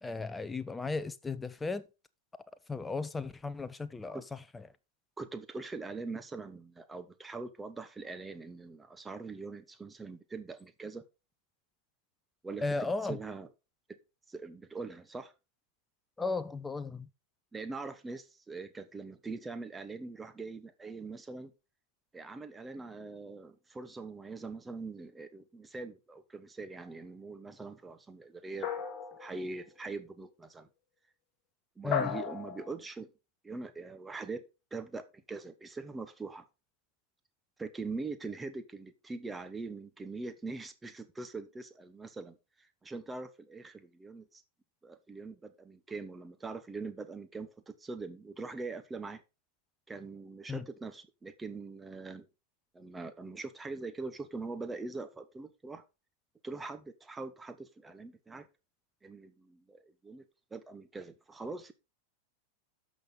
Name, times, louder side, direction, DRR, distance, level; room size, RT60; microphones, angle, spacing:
voice 1, 0.0-1.9 2.7-4.6 12.6-13.2 16.2-17.1 31.8-32.2 50.5-50.7, left 3 dB, 10° left, 0.7 m, -35 dB
voice 2, 5.2-11.0 12.4-13.5 14.3-15.3 17.5-21.5 22.1-28.7 29.1-30.7 31.8-33.1 33.4-36.4 37.6-44.4 44.8-49.2 49.9-52.3 52.7-55.8 56.4-58.5 59.0-60.2 60.5-61.7, right 3 dB, 10° right, 1.1 m, -42 dB
sound 1, 28.6-29.6 31.9-32.7, left 8 dB, 30° left, 1.8 m, -35 dB
12.0 x 6.3 x 3.9 m
figure-of-eight pair, 90°, 0 cm